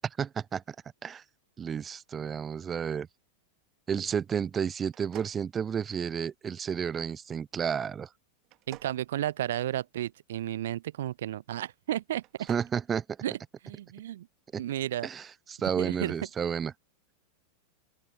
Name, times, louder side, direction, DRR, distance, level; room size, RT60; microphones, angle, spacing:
voice 1, 0.0-0.8 1.0-1.2 1.6-3.1 3.9-8.1 12.5-13.0 14.5-14.6 15.0-16.7, right 7 dB, 20° right, 0.6 m, -31 dB
sound 1, 4.9-6.2 8.4-10.0 12.1-12.8, right 18 dB, 40° right, 2.7 m, -50 dB
voice 2, 8.7-12.5 13.2-13.4 13.6-14.3 14.6-15.1 15.8-16.2, right 12 dB, 60° right, 1.0 m, -33 dB
open air
figure-of-eight pair, 90°, 0 cm